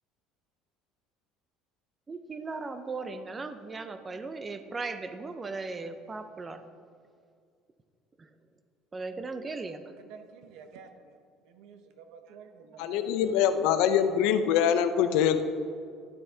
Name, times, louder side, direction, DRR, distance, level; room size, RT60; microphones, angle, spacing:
voice 1, 2.1-6.6 8.2-8.3 8.9-9.8, right 3 dB, 15° right, 10 dB, 0.4 m, -37 dB
voice 2, 10.0-11.2 11.5-13.3, right 6 dB, 65° right, 7 dB, 0.7 m, -50 dB
voice 3, 12.8-15.4, left 8 dB, 70° left, 10 dB, 0.5 m, -24 dB
12.0 x 7.7 x 2.7 m, 2.2 s
cardioid pair, 170°, 0 cm